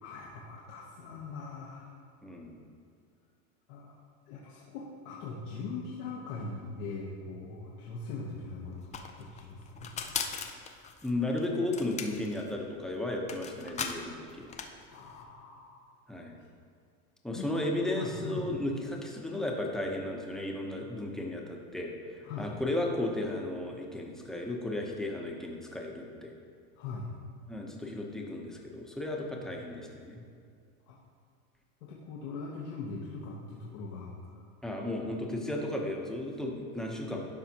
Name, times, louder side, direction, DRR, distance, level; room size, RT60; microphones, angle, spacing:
voice 1, 0.0-1.9 3.7-9.9 14.9-15.9 17.3-17.6 17.9-18.5 22.2-22.5 26.8-27.1 29.4-29.5 30.9-31.0 31.8-34.4, left 4 dB, 90° left, -4 dB, 1.2 m, -41 dB
voice 2, 2.2-2.6 11.0-14.5 16.1-16.4 17.2-26.3 27.5-30.2 34.6-37.3, left 1 dB, ahead, -1 dB, 0.8 m, -34 dB
sound 1, 8.2-8.3 8.5-15.2, left 6 dB, 20° left, 0.3 m, -39 dB
12.0 x 5.0 x 2.9 m, 2.3 s
supercardioid pair, 120°, 43 cm